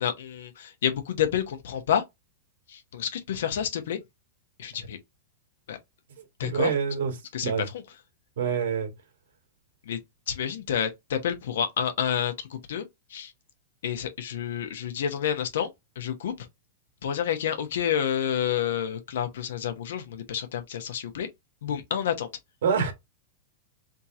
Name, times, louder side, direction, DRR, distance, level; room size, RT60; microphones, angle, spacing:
voice 1, 0.0-2.0 2.7-4.0 4.6-5.0 5.7-5.8 6.4-6.7 7.3-7.5 9.9-10.0 10.3-12.8 13.1-13.3 13.8-15.7 16.0-16.5 17.0-21.3 21.6-22.3, left 9 dB, 70° left, 1.0 m, -29 dB
voice 2, 6.4-7.1 7.4-7.6 8.4-8.9 22.6-22.9, right 6 dB, 75° right, 1.7 m, -26 dB
3.7 x 2.9 x 4.8 m
supercardioid pair, 175°, 0 cm